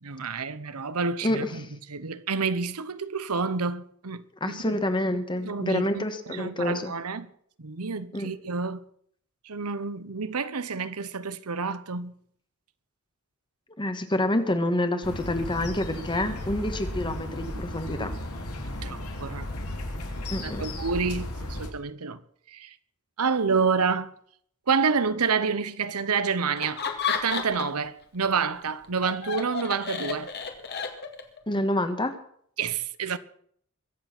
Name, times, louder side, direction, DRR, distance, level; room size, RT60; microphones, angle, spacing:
voice 1, 0.0-4.6 5.4-7.3 7.6-8.8 9.4-12.1 18.8-19.5 20.4-22.2 22.5-22.7 23.2-24.1 24.7-30.3 32.6-33.2, right 5 dB, 80° right, 1.0 m, -29 dB
voice 2, 4.4-6.9 8.1-8.3 13.8-18.1 20.3-20.6 31.5-32.1, left 1 dB, 20° left, 1.5 m, -27 dB
sound 1, 15.0-21.7, left 1 dB, 85° left, 3.3 m, -35 dB
Laughter, 26.6-27.9 28.2-31.4, left 6 dB, 50° left, 2.2 m, -32 dB
23.0 x 8.2 x 6.1 m
head